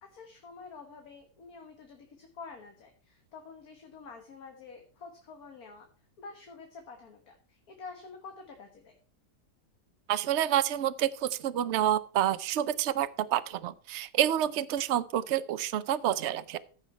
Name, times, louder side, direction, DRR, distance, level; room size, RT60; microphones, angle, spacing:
voice 1, 0.0-5.9 6.2-9.0, left 4 dB, 55° left, 3 dB, 1.8 m, -48 dB
voice 2, 10.1-16.6, right 11 dB, 65° right, 14 dB, 0.6 m, -28 dB
14.0 x 6.1 x 4.4 m, 0.40 s
omnidirectional pair, 1.9 m